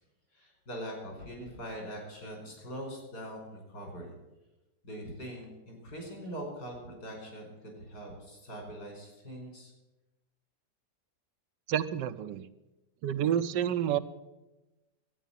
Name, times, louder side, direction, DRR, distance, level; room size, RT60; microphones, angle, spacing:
voice 1, 0.3-4.1 4.8-9.7, equal, 70° left, 1 dB, 5.5 m, -42 dB
voice 2, 11.7-12.5 13.0-14.0, right 10 dB, 85° right, 11 dB, 1.4 m, -29 dB
12.5 x 9.2 x 9.1 m, 1.0 s
omnidirectional pair, 1.8 m